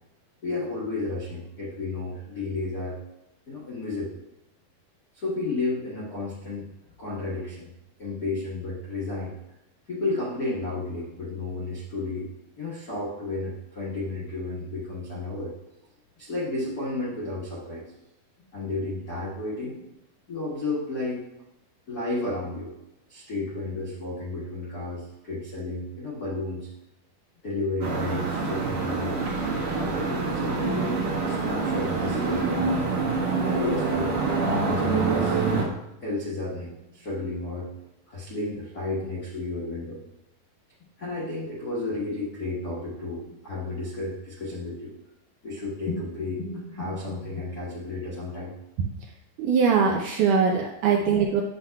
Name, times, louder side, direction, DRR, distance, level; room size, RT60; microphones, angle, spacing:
voice 1, 0.4-3.0 3.5-4.2 5.1-6.7 7.0-7.6 8.0-9.3 9.9-12.3 12.6-15.5 16.2-17.9 18.5-19.8 20.3-21.2 21.9-22.7 23.1-26.7 27.4-29.3 29.7-32.9 33.3-34.1 34.6-35.7 36.0-37.7 38.1-40.0 41.0-44.9 45.4-48.5 51.0-51.2, left 2 dB, 80° left, -8 dB, 0.8 m, -32 dB
sound 1, 27.8-35.7, right 4 dB, 65° right, 2.9 m, -26 dB
voice 2, 49.4-51.4, right 6 dB, 80° right, 1 dB, 1.8 m, -22 dB
9.4 x 7.7 x 2.3 m, 0.90 s
omnidirectional pair, 4.3 m